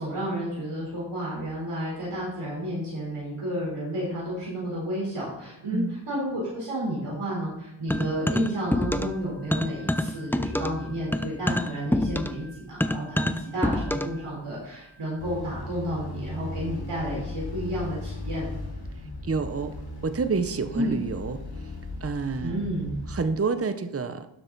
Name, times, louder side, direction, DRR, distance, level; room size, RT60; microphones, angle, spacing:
voice 1, 0.0-18.5 20.7-20.9 22.4-22.9, equal, 85° right, -5 dB, 4.0 m, -31 dB
sound 1, 7.9-9.2 9.5-14.2, left 1 dB, 5° left, 0.7 m, -27 dB
sound 2, 15.2-23.3, left 2 dB, 50° left, 3.4 m, -37 dB
voice 2, 19.0-19.8 20.0-22.6 23.1-24.3, right 4 dB, 30° right, 10 dB, 0.8 m, -29 dB
12.0 x 7.7 x 4.0 m, 0.83 s
wide cardioid pair, 50°, 49 cm